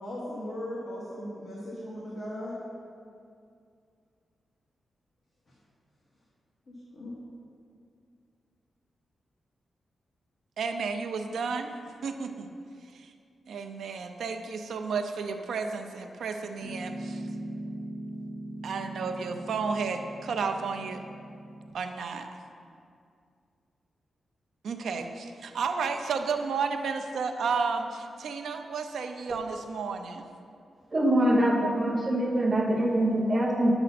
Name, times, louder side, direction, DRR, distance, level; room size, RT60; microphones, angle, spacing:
voice 1, 0.0-2.5 6.9-7.1, left 1 dB, 35° left, -7 dB, 1.6 m, -37 dB
voice 2, 10.6-11.7 12.0-12.5 12.9-13.1 13.5-17.2 18.6-21.0 21.7-22.3 24.6-30.3, right 5 dB, 75° right, 6 dB, 0.6 m, -32 dB
Piano, 16.6-21.7, right 1 dB, 10° right, 2.3 m, -40 dB
voice 3, 30.9-33.7, right 1 dB, 30° right, -2 dB, 1.2 m, -24 dB
9.7 x 7.9 x 4.2 m, 2.4 s
wide cardioid pair, 170°, 0 cm